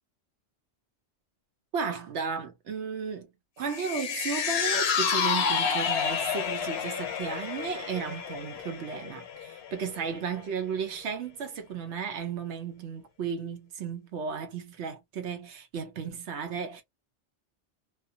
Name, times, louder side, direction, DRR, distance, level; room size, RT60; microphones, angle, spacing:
voice 1, 1.7-3.3 3.6-16.8, right 6 dB, 75° right, 0.9 m, -34 dB
sound 1, 3.7-10.1 10.5-10.6, left 7 dB, 70° left, 0.8 m, -29 dB
2.5 x 2.3 x 2.6 m
omnidirectional pair, 1.2 m